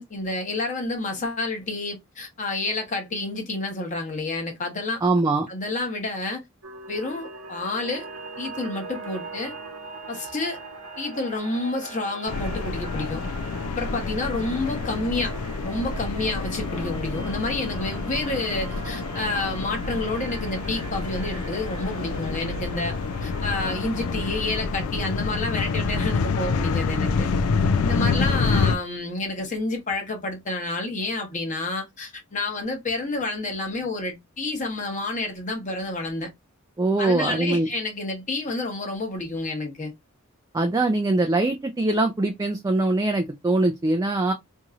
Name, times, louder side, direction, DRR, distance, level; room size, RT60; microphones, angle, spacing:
voice 1, 0.0-5.0 5.5-6.4 6.9-8.1 8.4-9.5 10.1-10.6 11.0-13.2 13.7-15.3 15.6-23.0 23.2-27.3 27.8-36.3 37.0-39.9, left 2 dB, 35° left, 0.9 m, -29 dB
voice 2, 5.0-5.5 36.8-37.7 40.5-44.3, right 2 dB, 15° right, 0.3 m, -22 dB
sound 1, 6.6-24.6, right 4 dB, 90° right, 0.8 m, -41 dB
sound 2, 12.3-28.8, left 4 dB, 85° left, 0.4 m, -27 dB
2.9 x 2.7 x 2.4 m
head